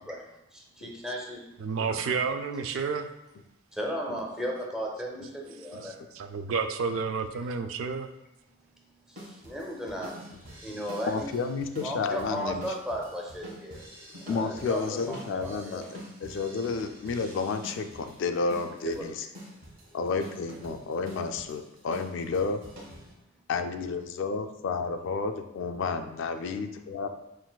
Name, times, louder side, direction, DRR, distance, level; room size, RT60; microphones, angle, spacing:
voice 1, 0.1-1.7 2.7-2.9 3.7-6.0 8.5-10.4 10.6-11.3 11.8-13.9 14.3-15.8 18.8-19.1, equal, 5° right, -2 dB, 0.6 m, -36 dB
voice 2, 1.6-3.1 5.8-8.1, right 5 dB, 80° right, 8 dB, 0.3 m, -30 dB
sound 1, 9.2-23.1, equal, 45° right, 1.2 m, -47 dB
voice 3, 10.7-12.6 14.2-19.3 19.9-22.6 23.5-27.1, left 4 dB, 65° left, 7 dB, 0.3 m, -31 dB
5.9 x 2.5 x 2.2 m, 0.88 s
head